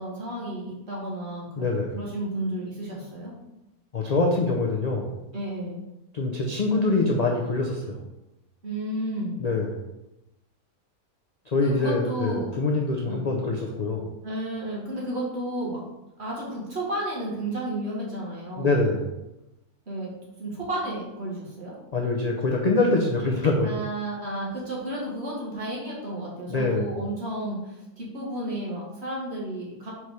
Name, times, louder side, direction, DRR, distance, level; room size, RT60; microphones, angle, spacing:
voice 1, 0.0-1.7 1.9-3.3 5.3-5.9 8.6-9.4 11.6-12.5 13.1-13.3 14.2-15.8 16.2-18.7 19.9-20.1 20.4-21.7 23.6-29.9, right 1 dB, 45° right, -4 dB, 1.8 m, -32 dB
voice 2, 1.6-2.0 3.9-5.2 6.1-8.0 9.4-9.8 11.5-14.1 18.6-19.1 21.9-23.7 26.5-26.9, left 3 dB, 50° left, 0 dB, 0.5 m, -24 dB
4.7 x 4.3 x 4.7 m, 0.94 s
omnidirectional pair, 1.6 m